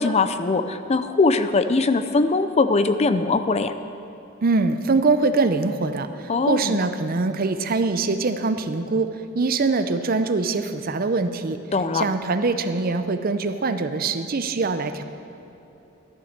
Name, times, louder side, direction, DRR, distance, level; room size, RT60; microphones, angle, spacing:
voice 1, 0.0-3.7 6.3-6.8 11.7-12.1, left 3 dB, 30° left, 11 dB, 0.5 m, -21 dB
voice 2, 4.4-9.1 9.4-11.6 11.9-15.0, right 3 dB, 45° right, 9 dB, 0.6 m, -23 dB
12.0 x 10.0 x 6.6 m, 2.9 s
head